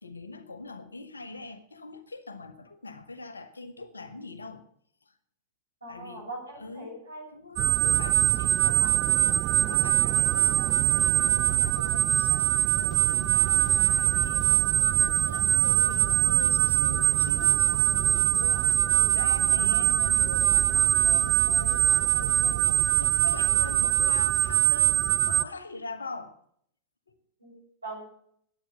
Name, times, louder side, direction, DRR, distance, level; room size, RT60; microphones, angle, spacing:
voice 1, 0.0-4.6 5.1-5.2 5.9-6.3 6.5-7.0 7.3-26.3 27.1-27.2, left 3 dB, 75° left, 1.2 m, -42 dB
voice 2, 5.8-7.3 27.4-27.6 27.8-28.1, right 2 dB, 80° right, 7.1 m, -40 dB
sound 1, 7.6-25.4, right 14 dB, 35° right, 0.5 m, -23 dB
sound 2, 12.5-24.7, right 4 dB, ahead, 4.1 m, -43 dB
10.5 x 9.4 x 7.8 m
figure-of-eight pair, 90°, 0 cm